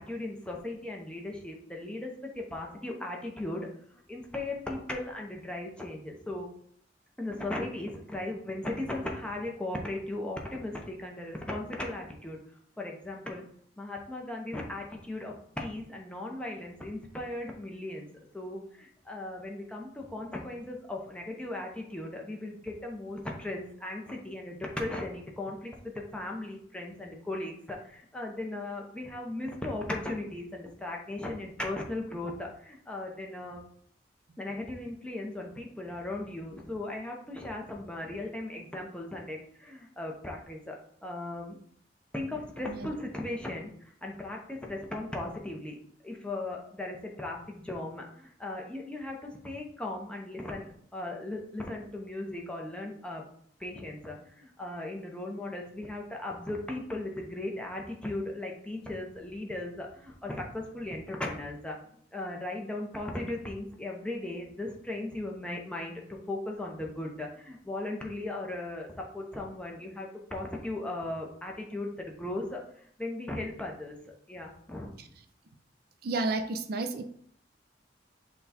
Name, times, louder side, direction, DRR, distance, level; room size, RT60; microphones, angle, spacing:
voice 1, 0.0-3.7 4.1-6.5 7.2-12.4 12.8-13.4 13.8-18.1 18.3-33.6 34.4-40.8 41.0-41.6 42.1-45.8 46.0-53.2 53.6-61.8 62.1-74.9, left 2 dB, 5° left, 0 dB, 0.6 m, -37 dB
voice 2, 76.0-77.0, right 3 dB, 55° right, 6 dB, 0.4 m, -31 dB
5.7 x 2.3 x 4.1 m, 0.63 s
head